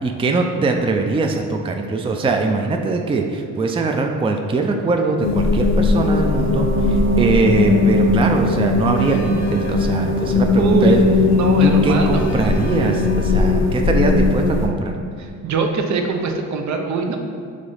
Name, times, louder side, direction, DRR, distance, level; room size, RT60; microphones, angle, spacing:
voice 1, 0.0-11.0 11.6-15.0, right 3 dB, 20° right, 3 dB, 0.5 m, -21 dB
sound 1, 5.2-14.7, left 3 dB, 65° left, 0.7 m, -18 dB
Wind instrument woodwind instrument, 6.0-14.0, left 1 dB, 35° right, 1.1 m, -31 dB
voice 2, 10.5-12.3 15.4-17.2, right 4 dB, 65° right, 4 dB, 0.8 m, -22 dB
5.0 x 3.8 x 5.5 m, 2.3 s
cardioid pair, 90°, 30 cm